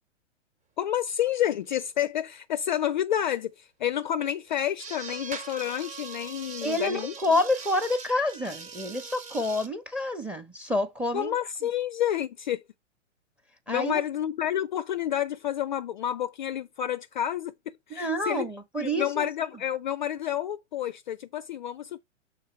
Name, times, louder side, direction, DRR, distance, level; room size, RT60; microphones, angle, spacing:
voice 1, 0.8-7.1 11.1-12.6 13.7-18.5 18.8-22.0, left 11 dB, 40° left, 0.4 m, -29 dB
sound 1, 1.6-1.7 1.9-2.0 2.7-2.8 3.3-3.4 4.0-9.7, right 5 dB, 20° right, 1.0 m, -41 dB
voice 2, 6.6-11.3 13.7-14.0 18.0-19.3, left 1 dB, 5° right, 0.7 m, -28 dB
6.5 x 3.9 x 4.3 m
figure-of-eight pair, 115°, 37 cm